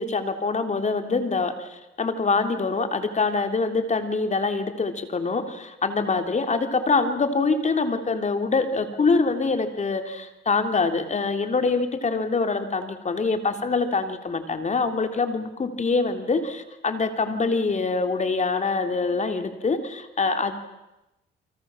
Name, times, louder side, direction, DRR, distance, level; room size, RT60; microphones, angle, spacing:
voice 1, 0.0-1.7 2.0-20.5, left 4 dB, 35° left, 7 dB, 3.5 m, -24 dB
30.0 x 24.0 x 7.4 m, 0.96 s
cardioid pair, 90°, 20 cm